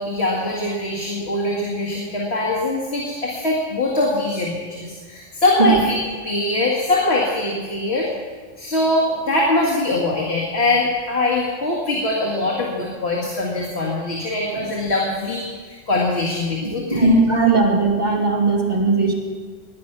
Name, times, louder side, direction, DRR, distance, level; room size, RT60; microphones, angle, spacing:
voice 1, 0.0-6.0 6.2-8.1 8.6-17.1, left 2 dB, 55° left, -4 dB, 2.4 m, -22 dB
voice 2, 16.6-19.1, right 3 dB, 35° right, -2 dB, 2.7 m, -18 dB
18.5 x 10.5 x 6.0 m, 1.5 s
omnidirectional pair, 1.3 m